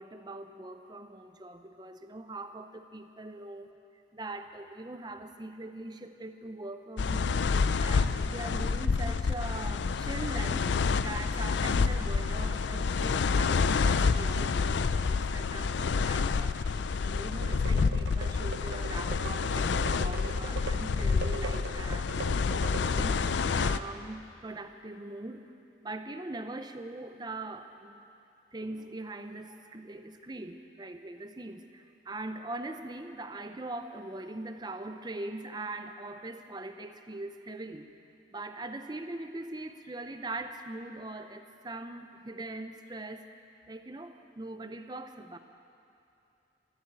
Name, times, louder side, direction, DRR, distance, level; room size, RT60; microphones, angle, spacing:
voice 1, 0.0-3.6 4.1-7.4 7.8-16.6 17.0-22.4 22.8-25.4 25.8-28.1 28.5-37.9 38.3-43.2 43.7-45.4, right 2 dB, 25° right, 8 dB, 0.6 m, -41 dB
sound 1, 7.0-23.8, left 5 dB, 75° left, 0.4 m, -28 dB
sound 2, 17.4-23.4, right 4 dB, 75° right, 0.8 m, -41 dB
13.0 x 12.0 x 8.0 m, 2.6 s
head